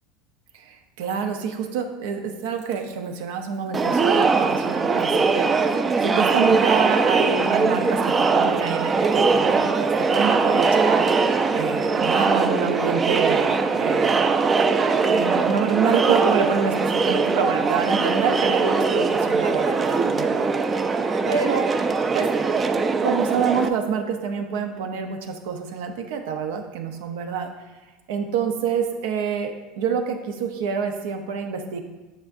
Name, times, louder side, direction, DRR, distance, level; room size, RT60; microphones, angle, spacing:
voice 1, 0.5-5.7 6.0-11.0 11.5-14.2 15.0-20.4 21.3-21.7 22.1-22.3 23.0-27.5 28.1-31.8, right 6 dB, 80° right, 6 dB, 0.7 m, -27 dB
Crowd, 3.7-23.7, right 4 dB, 25° right, 0.4 m, -21 dB
7.3 x 5.7 x 2.6 m, 1.2 s
supercardioid pair, 115°, 0 cm